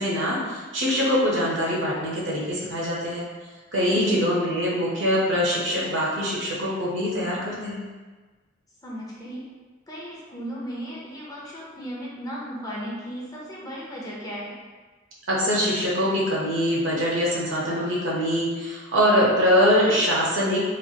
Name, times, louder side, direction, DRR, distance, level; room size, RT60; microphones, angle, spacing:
voice 1, 0.0-3.3 3.7-7.8 15.3-20.6, equal, 70° right, -5 dB, 0.8 m, -23 dB
voice 2, 3.8-4.3 8.8-9.4 9.9-14.5, equal, 20° left, -5 dB, 0.5 m, -35 dB
3.1 x 2.4 x 2.8 m, 1.3 s
head